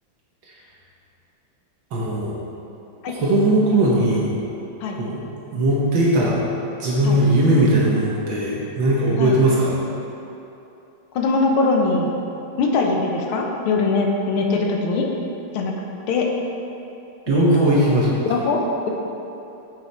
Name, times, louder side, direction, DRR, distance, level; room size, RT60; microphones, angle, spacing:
voice 1, 1.9-2.4 3.1-4.3 5.0-5.2 5.5-6.4 6.8-9.8 17.3-18.2, right 1 dB, 65° right, -4 dB, 1.7 m, -19 dB
voice 2, 11.1-12.2 12.6-15.1 15.5-15.7 16.1-16.3 17.3-18.0 18.2-18.9, left 3 dB, 75° left, 1 dB, 1.7 m, -22 dB
7.7 x 6.9 x 4.3 m, 2.9 s
omnidirectional pair, 2.3 m